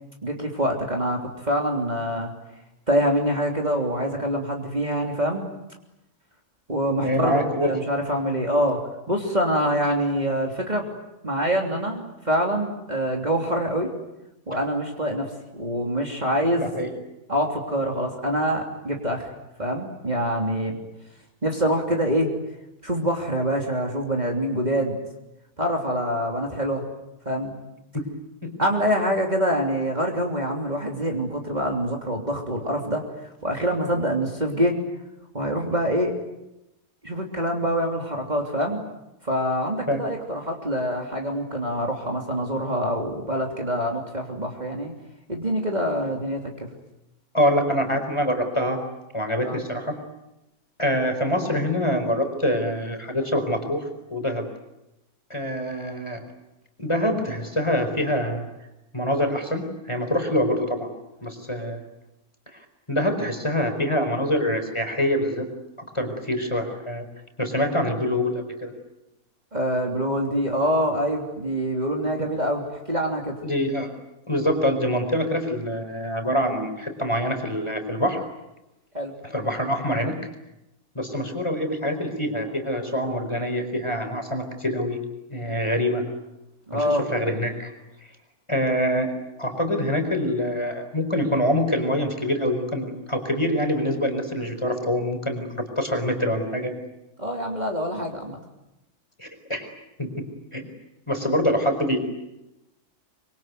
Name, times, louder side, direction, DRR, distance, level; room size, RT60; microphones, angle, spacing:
voice 1, 0.2-2.3 2.9-5.5 6.7-8.8 9.1-10.8 11.2-13.9 14.5-16.7 17.3-19.3 19.6-20.7 21.4-22.3 22.8-24.9 25.6-26.8 27.2-27.5 28.6-33.0 33.4-34.7 35.3-36.1 37.0-38.8 39.2-44.9 45.3-46.7 49.4-49.6 69.5-73.3 78.9-79.1 86.7-87.0 97.2-98.4, equal, 25° right, 0 dB, 3.3 m, -25 dB
voice 2, 7.0-7.7 16.6-16.9 27.9-28.0 28.4-28.5 39.9-40.0 47.3-48.8 49.1-49.9 50.8-53.8 54.1-54.5 55.3-56.2 56.8-58.5 58.9-60.9 61.2-61.8 62.9-65.5 65.9-67.1 67.4-68.7 73.4-73.9 74.3-78.2 79.2-80.1 80.9-85.0 85.3-86.0 86.7-87.7 88.5-89.1 89.4-96.7 99.2-99.7 100.0-100.2 100.5-100.7 101.1-102.0, equal, 20° left, 5 dB, 4.5 m, -25 dB
25.5 x 24.0 x 9.4 m, 0.93 s
omnidirectional pair, 1.6 m